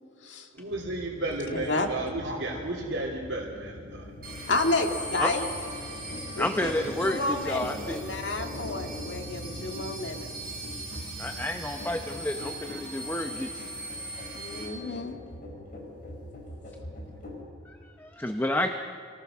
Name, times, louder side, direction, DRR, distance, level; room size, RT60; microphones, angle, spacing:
voice 1, 0.5-4.1, right 2 dB, 75° right, -6 dB, 3.2 m, -33 dB
sound 1, 0.7-17.4, left 1 dB, 50° left, 5.3 m, -42 dB
voice 2, 1.5-1.9 4.5-5.5 6.4-6.7 7.0-10.3 14.3-15.1, left 2 dB, 75° left, 3 dB, 2.1 m, -30 dB
sound 2, 4.2-14.7, right 2 dB, 55° right, 7.3 m, -40 dB
voice 3, 6.4-8.0 11.2-13.7 17.7-18.7, left 1 dB, 10° left, 5 dB, 0.8 m, -30 dB
27.0 x 19.0 x 6.2 m, 2.2 s
head